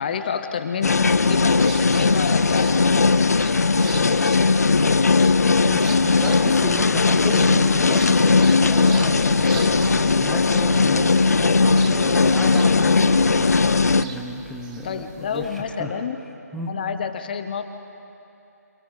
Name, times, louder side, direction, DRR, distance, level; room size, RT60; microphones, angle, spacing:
voice 1, 0.0-2.9 14.8-16.2 16.7-17.7, left 6 dB, 30° left, 9 dB, 0.8 m, -28 dB
sound 1, 0.8-14.0, left 4 dB, 65° left, 0.7 m, -18 dB
sound 2, 1.6-15.6, right 4 dB, 25° right, 1.6 m, -42 dB
voice 2, 5.6-11.1 11.8-13.2 13.8-16.0 16.5-16.7, equal, ahead, -1 dB, 0.9 m, -34 dB
27.5 x 25.5 x 4.0 m, 2.9 s
figure-of-eight pair, 155°, 9 cm